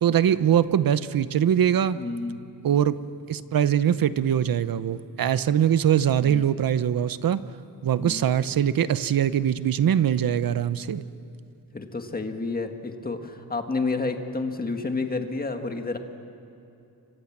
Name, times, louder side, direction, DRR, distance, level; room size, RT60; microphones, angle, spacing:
voice 1, 0.0-2.0 2.6-3.0 3.3-7.4 7.8-11.1, right 9 dB, 60° right, 14 dB, 0.9 m, -22 dB
voice 2, 1.9-2.4 6.2-6.5 8.0-8.2 11.7-16.0, left 3 dB, 25° left, 5 dB, 1.7 m, -30 dB
29.5 x 25.0 x 7.4 m, 2.8 s
wide cardioid pair, 170°, 39 cm